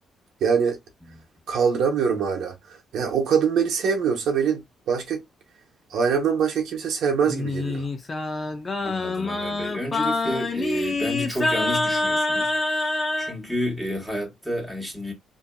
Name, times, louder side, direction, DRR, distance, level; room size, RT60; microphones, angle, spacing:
voice 1, 0.4-0.8 1.5-2.6 2.9-5.2 5.9-7.9, right 6 dB, 75° right, 1.0 m, -23 dB
Singing, 7.3-13.3, left 2 dB, 30° left, 0.7 m, -26 dB
voice 2, 8.8-15.1, equal, ahead, 1.5 m, -31 dB
2.7 x 2.6 x 2.3 m
cardioid pair, 90°, 0 cm